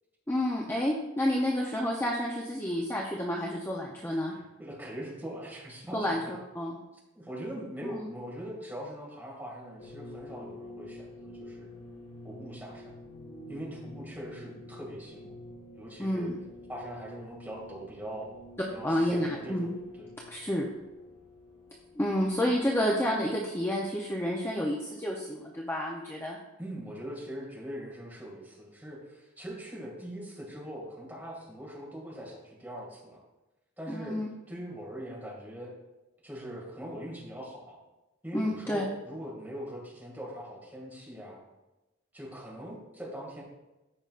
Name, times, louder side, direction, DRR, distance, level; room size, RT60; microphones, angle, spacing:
voice 1, 0.3-4.3 5.9-6.8 7.8-8.0 16.0-16.4 18.8-19.7 20.3-20.7 22.0-26.4 33.9-34.3 38.3-38.9, equal, 10° left, -2 dB, 0.7 m, -30 dB
voice 2, 4.1-6.3 7.2-11.7 12.2-13.0 13.5-15.3 15.8-16.3 16.7-20.1 26.6-33.2 33.8-34.2 34.5-35.7 36.2-37.8 38.2-41.4 42.1-43.4, equal, 10° right, -4 dB, 2.2 m, -42 dB
sound 1, 9.8-23.1, left 1 dB, 85° left, 1.5 m, -48 dB
14.5 x 5.3 x 2.5 m, 1.0 s
head